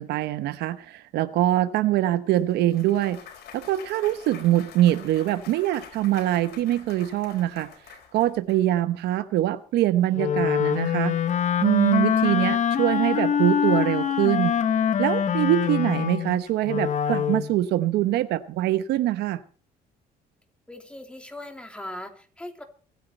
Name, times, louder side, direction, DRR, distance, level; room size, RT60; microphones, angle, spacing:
voice 1, 0.0-3.2 3.5-7.7 8.1-11.2 11.6-14.5 15.0-19.4, right 14 dB, 80° right, 0.9 m, -23 dB
Clapping / Cheering / Applause, 2.4-8.6, left 8 dB, 70° left, 4.7 m, -46 dB
Wind instrument woodwind instrument, 10.1-17.5, left 8 dB, 45° left, 1.3 m, -24 dB
voice 2, 20.7-22.6, left 1 dB, 5° left, 3.0 m, -39 dB
24.0 x 9.5 x 4.4 m
cardioid pair, 110°, 17 cm